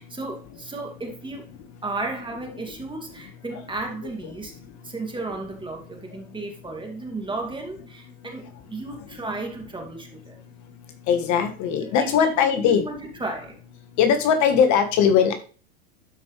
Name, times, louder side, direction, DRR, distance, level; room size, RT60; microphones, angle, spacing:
voice 1, 0.0-1.5 1.8-4.5 4.8-10.4 11.8-13.6, right 2 dB, 10° right, 2 dB, 2.3 m, -34 dB
voice 2, 11.1-12.8 14.0-15.3, left 7 dB, 45° left, 8 dB, 1.4 m, -20 dB
12.0 x 5.3 x 3.2 m, 0.38 s
hypercardioid pair, 100°, 41 cm